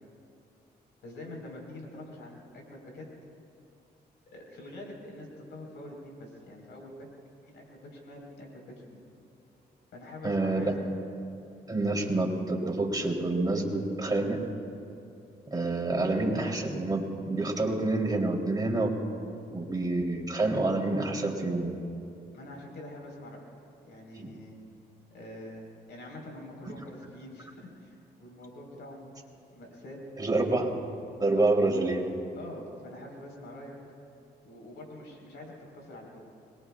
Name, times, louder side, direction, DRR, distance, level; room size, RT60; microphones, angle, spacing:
voice 1, 1.0-3.1 4.3-7.1 7.4-9.0 9.9-10.7 22.3-23.4 23.9-24.6 25.1-29.1 29.5-30.0 31.3-31.7 32.4-33.7 34.4-36.2, left 1 dB, 85° left, 0 dB, 4.5 m, -45 dB
voice 2, 10.2-10.7 11.7-14.4 15.5-18.9 19.5-21.7 24.1-24.3 30.2-30.8 31.2-32.0, right 2 dB, 20° right, -1 dB, 3.4 m, -27 dB
26.5 x 21.5 x 2.4 m, 2.7 s
cardioid pair, 70°, 18 cm